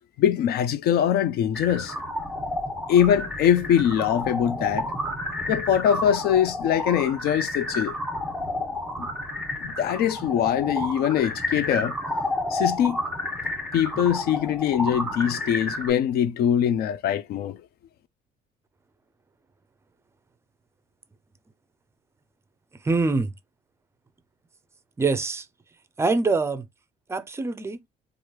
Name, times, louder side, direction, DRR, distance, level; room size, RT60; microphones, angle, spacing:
voice 1, 0.2-1.9 2.9-4.9 5.5-8.0 9.6-11.9 12.5-13.0 13.7-17.6, left 9 dB, 70° left, 0.4 m, -22 dB
sound 1, 1.5-15.9, left 1 dB, 5° left, 1.4 m, -31 dB
voice 2, 22.8-23.3 25.0-25.5 26.0-26.7 27.1-27.8, right 3 dB, 15° right, 0.4 m, -24 dB
3.1 x 2.5 x 3.0 m
cardioid pair, 110°, 17 cm